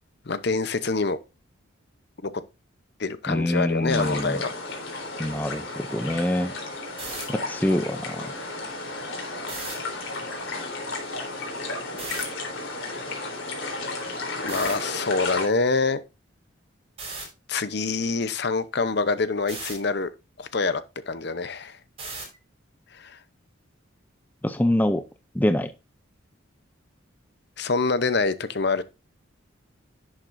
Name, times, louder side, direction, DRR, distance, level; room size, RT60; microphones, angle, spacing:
voice 1, 0.3-1.2 2.2-2.3 3.0-4.7 14.4-16.0 17.5-20.1 20.4-21.8 22.9-23.2 27.6-28.8, left 3 dB, 50° left, 0.7 m, -26 dB
voice 2, 3.3-4.4 5.2-5.7 5.9-6.5 7.3-8.3 24.4-25.0 25.3-25.7, left 1 dB, 10° left, 0.5 m, -25 dB
sound 1, 3.9-15.5, left 2 dB, 75° left, 3.6 m, -33 dB
sound 2, 6.9-7.2 9.4-9.7 12.0-12.2 14.5-14.7 17.0-17.2 19.5-19.8 22.0-22.4, right 3 dB, 30° right, 5.9 m, -35 dB
11.0 x 7.5 x 2.6 m
head